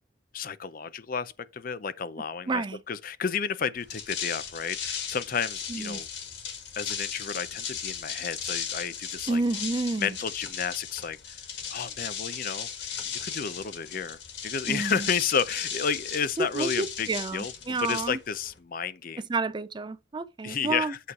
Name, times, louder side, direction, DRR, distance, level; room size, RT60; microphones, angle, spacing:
voice 1, 0.3-6.1 6.8-9.4 10.0-11.4 11.7-17.5 17.8-19.2 20.4-21.0, left 6 dB, 45° left, 0.5 m, -32 dB
voice 2, 2.5-2.8 5.7-6.0 9.3-10.2 14.7-15.1 16.4-18.2 19.3-20.9, right 3 dB, 25° right, 0.4 m, -30 dB
sound 1, 3.8-18.6, left 7 dB, 65° left, 1.8 m, -36 dB
8.3 x 3.1 x 6.2 m
head